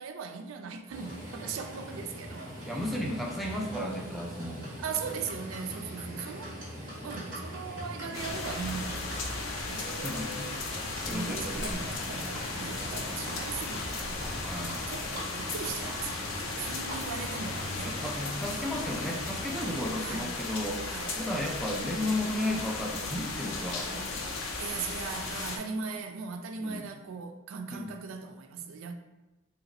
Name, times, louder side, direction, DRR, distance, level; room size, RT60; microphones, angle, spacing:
voice 1, 0.0-2.5 3.4-3.6 4.8-6.5 7.0-10.7 11.1-14.2 14.9-17.9 20.0-20.4 20.8-21.2 24.6-28.9, right 5 dB, 85° right, 0.3 m, -39 dB
Livestock farm animals working animals, 0.9-19.9, equal, 45° right, 1.3 m, -42 dB
voice 2, 2.7-4.7 10.0-10.6 11.0-11.8 14.4-14.9 17.8-20.9 21.2-24.3 26.6-26.8 27.7-28.0, left 1 dB, ahead, 0.3 m, -34 dB
sound 1, 8.1-25.6, left 3 dB, 80° left, 0.5 m, -36 dB
3.1 x 2.9 x 2.5 m
head